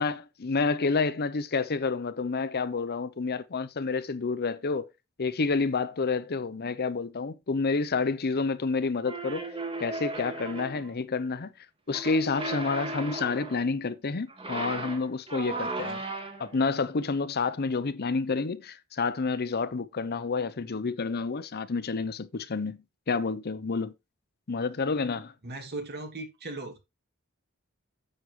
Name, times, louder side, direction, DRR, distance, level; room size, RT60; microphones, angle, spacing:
voice 1, 0.0-4.9 5.2-9.5 9.8-11.5 11.9-16.0 16.4-23.9 24.5-25.3, left 4 dB, 50° left, 0.7 m, -29 dB
sound 1, 9.0-10.9 11.9-13.7 14.3-16.6, right 2 dB, 25° right, 1.9 m, -36 dB
voice 2, 25.4-26.8, right 2 dB, 50° right, 2.6 m, -37 dB
9.6 x 7.6 x 3.2 m
head